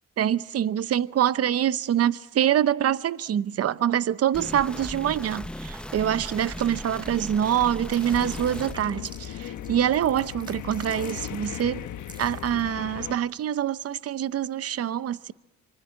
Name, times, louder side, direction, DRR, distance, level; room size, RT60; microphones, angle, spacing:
voice 1, 0.2-11.8 12.2-15.3, right 10 dB, 55° right, 0.8 m, -25 dB
sound 1, 4.3-8.7, left 1 dB, 5° left, 0.8 m, -37 dB
sound 2, 5.6-7.5 7.8-12.7, right 2 dB, 15° right, 2.3 m, -49 dB
sound 3, 8.1-13.1, left 11 dB, 80° left, 1.4 m, -37 dB
26.0 x 24.5 x 7.6 m
cardioid pair, 90°, 30 cm